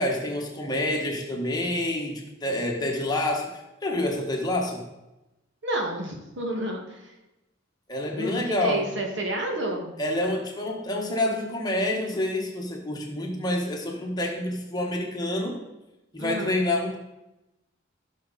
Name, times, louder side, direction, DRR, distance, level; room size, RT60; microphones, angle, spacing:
voice 1, 0.0-4.8 7.9-8.9 10.0-15.6 16.1-17.0, left 1 dB, 20° left, 0 dB, 1.6 m, -28 dB
voice 2, 5.6-7.1 8.2-9.9 16.2-16.6, right 1 dB, 60° right, 1 dB, 2.1 m, -30 dB
15.5 x 6.3 x 4.3 m, 0.97 s
head